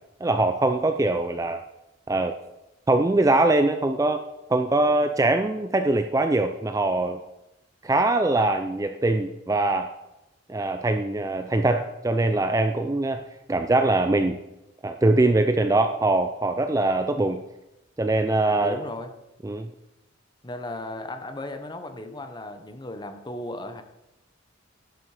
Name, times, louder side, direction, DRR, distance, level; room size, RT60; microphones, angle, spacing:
voice 1, 0.2-1.6 2.1-2.3 2.9-4.2 4.5-7.2 7.8-9.9 10.5-13.2 13.5-14.4 14.8-17.4 18.0-18.8 19.4-19.7, right 2 dB, 15° right, 7 dB, 0.4 m, -22 dB
voice 2, 18.6-19.1 20.4-23.8, left 1 dB, 20° left, 7 dB, 0.8 m, -36 dB
11.0 x 7.5 x 4.9 m, 0.93 s
head